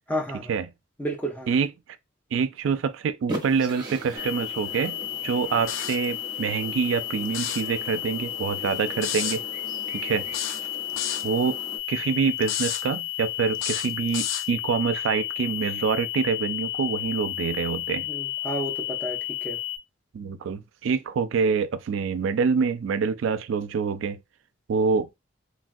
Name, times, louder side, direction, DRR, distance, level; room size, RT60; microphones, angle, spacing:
voice 1, 0.1-0.6 1.0-1.5 18.1-19.6, right 1 dB, 10° left, 0.6 m, -31 dB
voice 2, 2.3-5.0 5.2-9.4 9.9-10.3 11.2-11.6 11.9-18.1 20.1-24.2 24.7-25.1, right 5 dB, 90° right, 0.3 m, -26 dB
sound 1, 3.3-11.8, right 1 dB, 20° right, 0.8 m, -40 dB
sound 2, 4.2-19.8, left 14 dB, 65° left, 1.7 m, -33 dB
sound 3, 5.7-6.1 7.3-7.7 9.0-9.4 10.3-11.3 12.4-12.8 13.6-14.5, left 9 dB, 90° left, 0.4 m, -30 dB
3.1 x 2.3 x 2.5 m
head